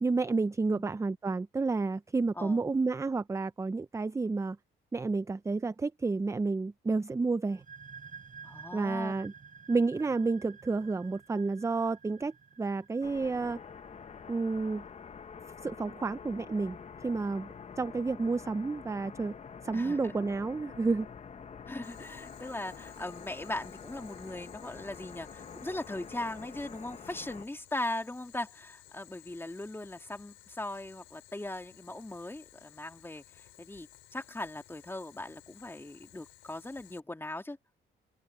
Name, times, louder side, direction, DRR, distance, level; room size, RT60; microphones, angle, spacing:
voice 1, 0.0-4.6 4.9-7.6 8.7-9.3 9.7-13.6 14.3-14.8 15.6-17.5 17.8-19.3 19.6-21.1, right 3 dB, 15° right, 0.5 m, -30 dB
sound 1, 7.5-14.9, right 6 dB, 40° right, 7.9 m, -52 dB
voice 2, 8.4-9.1 19.7-20.2 21.7-37.6, left 1 dB, 10° left, 2.8 m, -39 dB
sound 2, 13.0-27.4, left 6 dB, 35° left, 0.8 m, -47 dB
Boiling, 21.8-37.0, left 14 dB, 85° left, 4.9 m, -58 dB
open air
cardioid pair, 90°, 20 cm